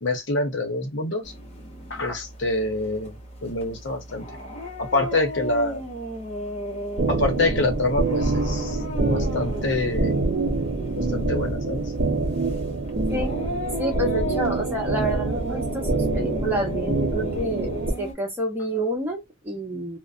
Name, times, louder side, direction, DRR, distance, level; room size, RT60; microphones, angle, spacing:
voice 1, 0.0-1.3 1.9-4.2 4.8-5.8 7.1-10.2 11.0-11.8, left 2 dB, 65° left, 0.8 m, -26 dB
sound 1, 1.2-18.1, equal, 30° left, 0.7 m, -35 dB
sound 2, 7.0-17.9, right 3 dB, 50° right, 0.5 m, -26 dB
voice 2, 13.8-20.0, right 1 dB, 10° right, 0.9 m, -29 dB
2.5 x 2.1 x 2.4 m
head